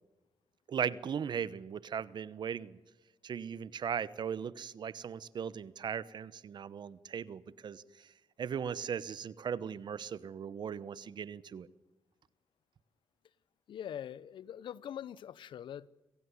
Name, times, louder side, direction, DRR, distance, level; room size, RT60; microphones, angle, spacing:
voice 1, 0.7-2.8 3.2-8.1 8.4-11.7, right 7 dB, 65° right, 1.0 m, -38 dB
voice 2, 13.7-15.9, left 10 dB, 75° left, 0.7 m, -43 dB
26.5 x 16.5 x 9.7 m
supercardioid pair, 55°, 8 cm